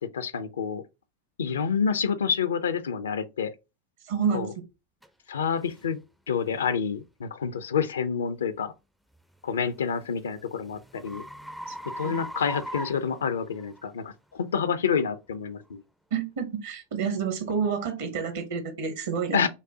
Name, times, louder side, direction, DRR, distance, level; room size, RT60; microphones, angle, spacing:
voice 1, 0.1-0.8 1.4-3.5 4.3-4.5 5.3-6.0 6.3-8.7 9.4-11.2 12.0-15.8 19.3-19.5, left 6 dB, 65° left, 0.4 m, -28 dB
voice 2, 4.0-4.5 11.7-11.8 12.0-12.2 16.1-19.5, right 6 dB, 55° right, 0.7 m, -29 dB
sound 1, 5.0-5.1 5.7-5.9 6.5-6.7 9.3-13.8, equal, ahead, 0.4 m, -40 dB
5.2 x 2.0 x 2.7 m
figure-of-eight pair, 90°, 0 cm